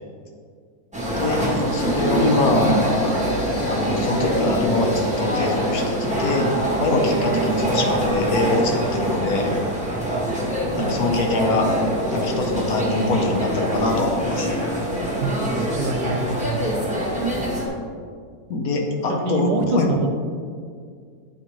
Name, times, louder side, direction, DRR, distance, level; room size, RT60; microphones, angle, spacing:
sound 1, 0.9-17.7, right 1 dB, 5° right, 0.8 m, -24 dB
voice 1, 1.7-3.3 3.7-6.5 6.8-9.5 10.8-11.7 12.1-14.5 18.5-19.9, left 2 dB, 70° left, 2 dB, 1.2 m, -23 dB
voice 2, 15.2-16.7 19.1-20.1, right 3 dB, 90° right, 4 dB, 1.2 m, -26 dB
9.2 x 4.1 x 3.0 m, 2.1 s
omnidirectional pair, 1.7 m